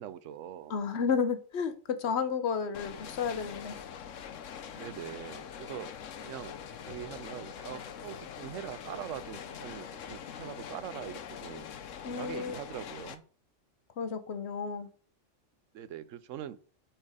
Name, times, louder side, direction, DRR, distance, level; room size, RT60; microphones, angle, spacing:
voice 1, 0.0-0.7 4.8-5.9 6.2-6.5 6.8-11.7 12.0-13.2 15.7-16.6, right 10 dB, 85° right, 1.0 m, -42 dB
voice 2, 0.7-3.8 12.0-12.5 14.0-14.9, left 6 dB, 65° left, 1.1 m, -32 dB
sound 1, 2.7-13.2, left 8 dB, 85° left, 1.1 m, -43 dB
8.9 x 4.6 x 4.9 m
omnidirectional pair, 1.3 m